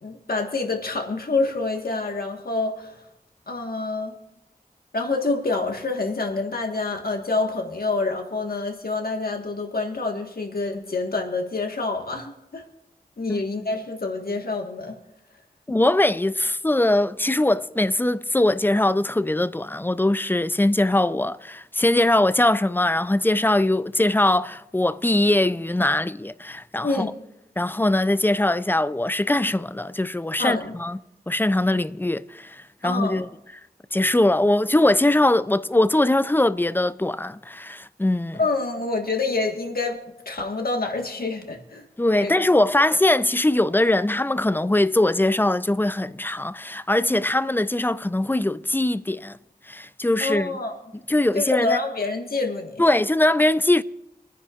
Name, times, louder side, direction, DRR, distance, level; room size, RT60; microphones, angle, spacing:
voice 1, 0.0-3.0 3.5-4.2 4.9-12.6 13.2-15.0 26.8-27.1 30.4-30.7 32.8-33.2 38.4-40.0 40.2-41.8 42.2-42.3 50.2-50.8 51.3-52.8, left 3 dB, 70° left, 1.5 m, -27 dB
voice 2, 15.7-27.1 27.6-31.0 31.3-33.3 33.9-38.4 42.0-49.4 49.7-50.6 51.1-51.8 52.8-53.8, left 1 dB, 15° left, 0.4 m, -21 dB
27.5 x 10.0 x 2.5 m
wide cardioid pair, 50°, 16 cm